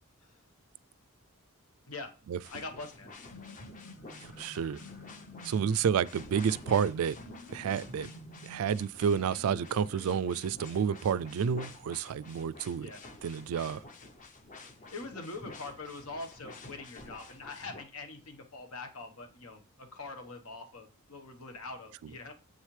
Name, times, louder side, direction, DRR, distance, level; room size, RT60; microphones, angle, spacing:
sound 1, 2.4-17.8, left 2 dB, 35° left, 0.8 m, -50 dB
voice 1, 2.5-3.1 12.8-13.0 14.9-22.3, left 3 dB, 80° left, 1.3 m, -43 dB
sound 2, 3.1-11.0, left 1 dB, 60° left, 1.7 m, -52 dB
voice 2, 4.4-4.8 5.4-7.2 7.5-8.1 8.4-12.9 13.2-13.8, right 7 dB, 80° right, 0.3 m, -30 dB
7.3 x 6.3 x 3.3 m
head